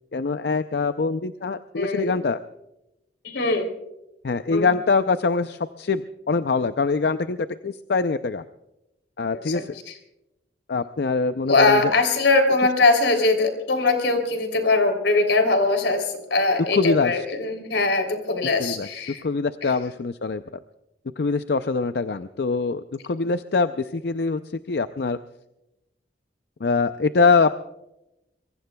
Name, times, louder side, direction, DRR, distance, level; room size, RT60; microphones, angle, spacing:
voice 1, 0.1-2.4 4.2-7.4 7.6-8.4 9.2-9.8 10.7-11.8 16.7-17.2 18.6-18.9 19.2-20.4 21.2-24.4 24.7-25.2 26.6-27.5, left 4 dB, 65° left, 11 dB, 0.5 m, -23 dB
voice 2, 1.8-2.1 3.2-3.7 4.5-4.7 9.5-9.9 11.5-19.2 19.6-19.7, left 3 dB, 85° left, 5 dB, 3.2 m, -21 dB
25.0 x 22.5 x 2.3 m, 0.90 s
head